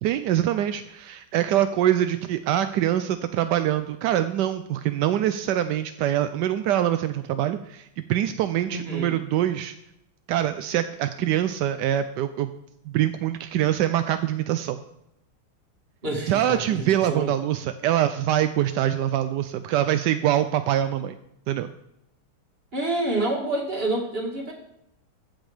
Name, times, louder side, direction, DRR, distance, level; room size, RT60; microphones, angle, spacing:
voice 1, 0.0-9.7 10.3-12.5 12.9-14.8 16.3-21.1 21.5-21.7, right 11 dB, 75° right, 10 dB, 1.0 m, -24 dB
voice 2, 8.7-9.2 16.0-17.3 22.7-24.5, right 2 dB, 30° right, 0 dB, 2.3 m, -28 dB
14.5 x 6.2 x 5.0 m, 0.83 s
omnidirectional pair, 2.3 m